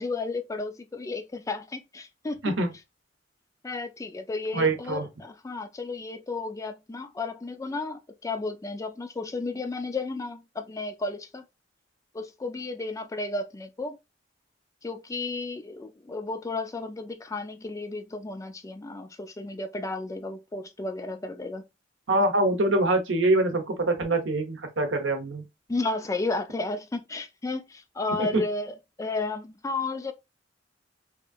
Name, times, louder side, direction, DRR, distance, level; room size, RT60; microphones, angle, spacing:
voice 1, 0.0-2.4 3.6-11.4 12.1-14.0 14.8-21.6 25.7-30.1, left 3 dB, 15° left, 0.3 m, -33 dB
voice 2, 4.5-5.1 22.1-25.4 28.2-28.4, right 2 dB, 75° right, 0.7 m, -24 dB
2.9 x 2.5 x 2.3 m
head